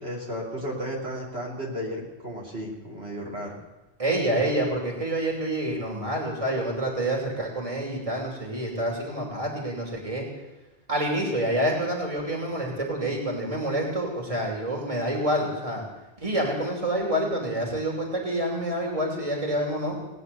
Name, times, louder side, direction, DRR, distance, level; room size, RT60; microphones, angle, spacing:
voice 1, 0.0-3.6, equal, 80° right, -3 dB, 3.4 m, -34 dB
voice 2, 4.0-10.3 10.9-15.8 16.2-20.0, right 1 dB, 35° right, -1 dB, 2.9 m, -27 dB
18.5 x 9.5 x 6.9 m, 1.1 s
omnidirectional pair, 1.1 m